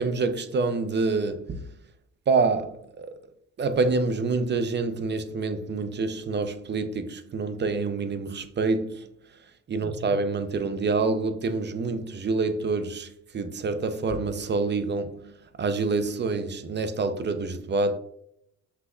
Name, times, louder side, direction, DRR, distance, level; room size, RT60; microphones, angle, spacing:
voice 1, 0.0-1.7 2.3-3.2 3.6-9.1 9.7-15.3 15.6-18.0, right 3 dB, 35° right, 0.6 m, -27 dB
5.7 x 3.7 x 2.3 m
cardioid pair, 90°, 30 cm